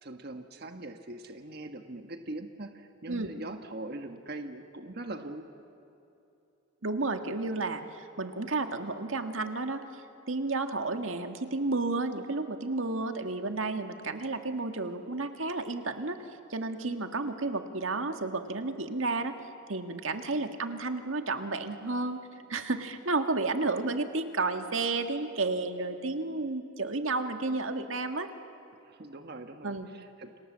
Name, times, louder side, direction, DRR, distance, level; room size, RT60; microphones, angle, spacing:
voice 1, 0.0-5.4 28.9-30.3, right 2 dB, 50° right, 6 dB, 1.4 m, -42 dB
voice 2, 6.8-9.8 10.3-16.2 16.5-19.4 19.7-22.2 22.5-28.3 29.6-29.9, right 3 dB, 85° right, 6 dB, 1.8 m, -32 dB
30.0 x 27.0 x 7.4 m, 2.9 s
head